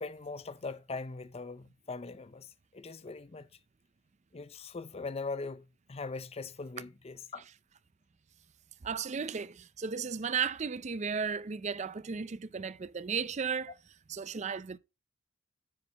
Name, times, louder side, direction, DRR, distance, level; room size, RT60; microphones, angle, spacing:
voice 1, 0.0-2.5 2.7-3.5 4.3-7.4, left 3 dB, 30° left, 0.5 m, -41 dB
voice 2, 8.8-13.7 14.1-14.8, right 6 dB, 35° right, 0.5 m, -35 dB
9.8 x 8.6 x 2.9 m
head